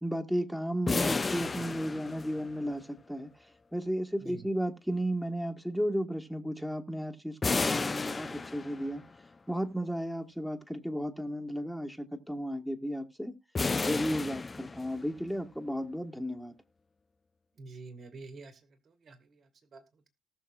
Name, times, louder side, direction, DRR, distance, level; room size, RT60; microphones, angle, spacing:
voice 1, 0.0-3.3 3.7-9.0 9.5-13.3 13.8-16.5, equal, ahead, 1.5 m, -34 dB
sound 1, 0.9-2.7 7.4-9.1 13.6-15.2, left 4 dB, 30° left, 0.5 m, -32 dB
voice 2, 17.6-20.1, right 3 dB, 50° right, 1.9 m, -49 dB
18.5 x 6.7 x 2.5 m
hypercardioid pair, 45°, 0 cm